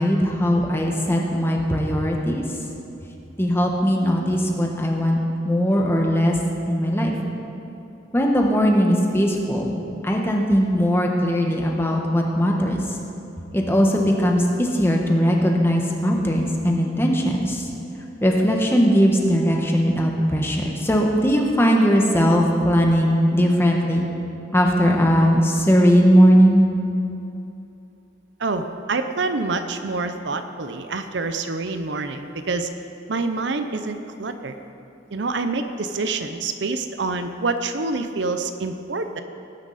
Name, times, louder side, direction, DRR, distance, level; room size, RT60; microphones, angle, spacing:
voice 1, 0.0-2.4 3.4-5.2 5.4-6.4 6.7-7.1 8.1-12.8 13.5-17.6 18.2-24.1 24.5-26.6, equal, 15° left, 0 dB, 1.3 m, -19 dB
voice 2, 28.4-32.7 33.1-34.6 35.1-39.2, right 3 dB, 65° right, 8 dB, 0.7 m, -27 dB
18.5 x 9.8 x 4.2 m, 2.8 s
head